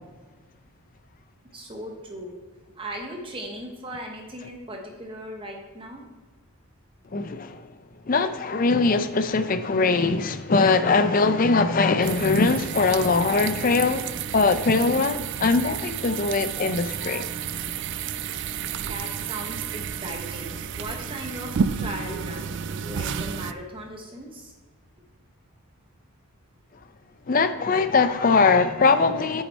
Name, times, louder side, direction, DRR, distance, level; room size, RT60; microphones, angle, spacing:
voice 1, 1.5-2.4 2.8-6.0 18.8-24.5, right 1 dB, 25° right, 1.0 m, -38 dB
voice 2, 7.1-7.7 8.1-17.3 27.3-29.4, left 4 dB, 40° left, 0.5 m, -21 dB
sound 1, 12.0-23.5, right 7 dB, 50° right, 0.3 m, -31 dB
9.0 x 6.6 x 4.2 m
head